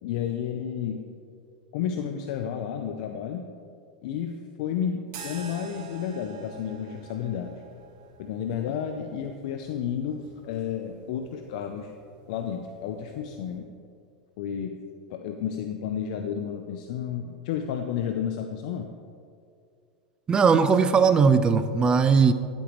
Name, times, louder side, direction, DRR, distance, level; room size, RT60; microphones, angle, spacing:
voice 1, 0.0-1.0 1.7-3.4 4.0-7.5 8.2-11.9 12.3-13.7 14.4-14.8 15.1-18.9, left 8 dB, 65° left, 6 dB, 0.5 m, -31 dB
sound 1, 5.1-13.6, right 5 dB, 50° right, 1.9 m, -48 dB
voice 2, 20.3-22.3, right 5 dB, 20° right, 11 dB, 0.5 m, -19 dB
10.0 x 8.7 x 3.1 m, 2.4 s
hypercardioid pair, 110°, 4 cm